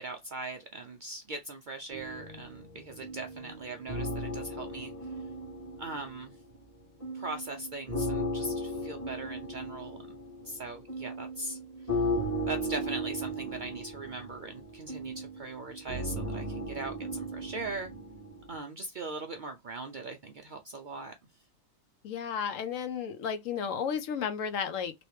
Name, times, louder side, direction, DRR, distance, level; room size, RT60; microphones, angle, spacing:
voice 1, 0.0-4.9 5.8-6.3 7.1-10.2 10.5-11.6 12.5-17.9 18.5-21.1, right 2 dB, 65° right, 0.5 m, -40 dB
sound 1, 1.9-6.6 7.0-18.6, equal, 10° left, 1.4 m, -36 dB
voice 2, 22.0-24.9, left 7 dB, 75° left, 1.0 m, -33 dB
3.0 x 2.9 x 3.1 m
omnidirectional pair, 1.4 m